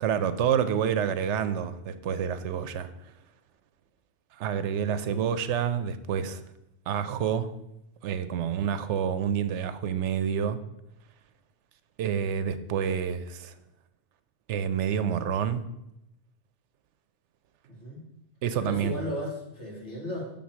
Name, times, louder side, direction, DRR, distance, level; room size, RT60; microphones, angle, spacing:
voice 1, 0.0-3.1 4.3-6.4 6.9-7.5 8.0-10.6 12.0-13.6 14.5-15.6 18.4-19.0, right 8 dB, 80° right, 12 dB, 0.9 m, -28 dB
voice 2, 4.9-5.3 17.7-18.0 18.6-20.3, left 1 dB, 80° left, -3 dB, 2.4 m, -36 dB
7.3 x 3.6 x 6.2 m, 0.84 s
omnidirectional pair, 1.2 m